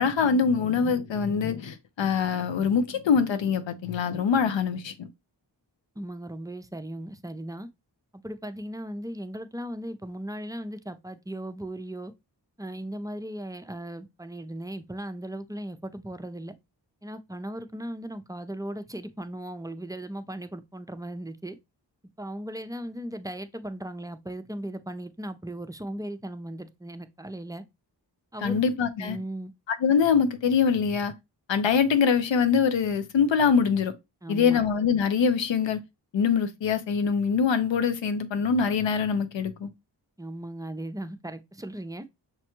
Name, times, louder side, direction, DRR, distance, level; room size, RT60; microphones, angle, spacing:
voice 1, 0.0-5.1 28.4-29.2 29.8-31.1 31.5-33.9 34.3-35.8 36.1-39.7, left 6 dB, 80° left, 0.6 m, -24 dB
voice 2, 6.0-7.7 8.2-12.1 12.6-16.5 17.0-21.6 22.2-27.6 28.3-28.6 29.0-29.5 34.2-34.6 40.2-42.1, right 1 dB, 10° right, 0.4 m, -37 dB
6.0 x 2.2 x 2.9 m
cardioid pair, 45°, 44 cm